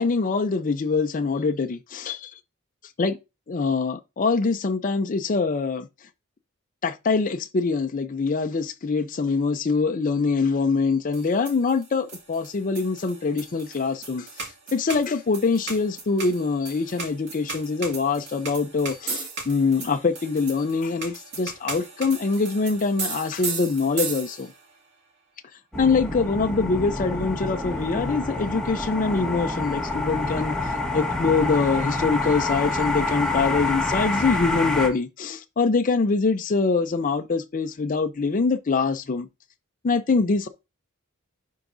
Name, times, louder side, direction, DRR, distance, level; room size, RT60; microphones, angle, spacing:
voice 1, 0.0-2.3 3.0-3.2 3.5-5.9 6.8-24.5 25.8-39.3 39.8-40.5, left 4 dB, 40° left, 0.5 m, -24 dB
sound 1, 11.1-24.7, right 4 dB, 55° right, 2.2 m, -36 dB
sound 2, 25.7-34.9, left 2 dB, 5° left, 1.3 m, -27 dB
10.5 x 4.6 x 2.6 m
head